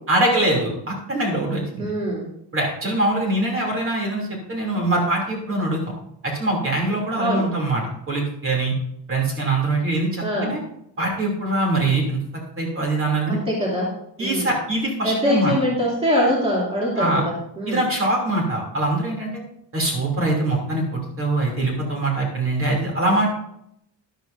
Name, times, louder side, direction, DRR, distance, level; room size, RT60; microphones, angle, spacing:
voice 1, 0.1-1.9 2.5-5.9 6.2-8.7 9.1-10.6 11.0-12.2 12.6-13.4 14.2-15.5 17.0-17.2 17.7-19.4 19.7-23.3, right 2 dB, 30° right, -1 dB, 2.9 m, -23 dB
voice 2, 1.8-2.3 7.2-7.5 10.2-10.5 13.3-13.9 14.2-14.5 15.0-17.8, equal, 15° right, -5 dB, 2.7 m, -23 dB
13.0 x 11.5 x 2.6 m, 0.76 s
cardioid pair, 175°, 43 cm